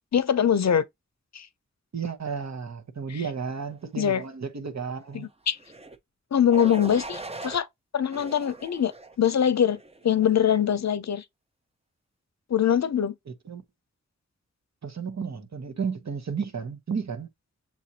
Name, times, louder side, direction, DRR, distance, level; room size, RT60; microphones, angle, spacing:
voice 1, 0.1-0.8 1.3-1.5 3.1-3.2 4.0-4.2 5.1-5.6 6.3-7.7 7.9-8.9 9.2-11.2 12.5-13.1, left 9 dB, 65° left, 0.6 m, -23 dB
voice 2, 1.9-5.3 13.5-13.6 14.8-17.3, right 6 dB, 65° right, 1.1 m, -33 dB
sound 1, 5.6-6.0 6.5-7.6 8.1-9.2 9.7-10.1, right 2 dB, 20° right, 0.6 m, -40 dB
7.1 x 2.4 x 2.8 m
wide cardioid pair, 90°, 29 cm